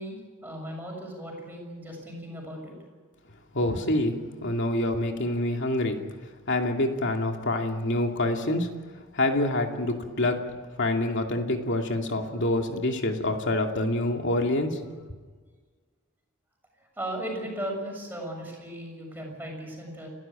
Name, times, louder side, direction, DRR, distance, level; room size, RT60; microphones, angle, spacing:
voice 1, 0.0-2.7 16.9-20.1, right 1 dB, 10° right, 0 dB, 6.8 m, -36 dB
voice 2, 3.5-6.0 6.5-8.7 9.1-10.4 10.8-14.9, left 1 dB, 55° left, 3 dB, 2.7 m, -26 dB
30.0 x 13.0 x 9.0 m, 1.5 s
head